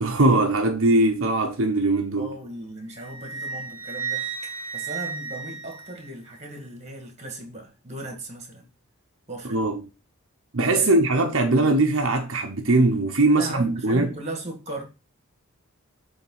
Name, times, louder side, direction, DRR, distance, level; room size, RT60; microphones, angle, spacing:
voice 1, 0.0-2.3 9.5-9.8 10.5-14.1, right 2 dB, 65° right, 0.8 m, -21 dB
voice 2, 2.2-8.7 9.3-9.7 10.7-10.9 13.3-14.8, right 2 dB, 30° right, 1.9 m, -37 dB
Wind instrument woodwind instrument, 2.9-6.4, right 6 dB, 10° right, 1.6 m, -34 dB
7.3 x 3.5 x 5.5 m
head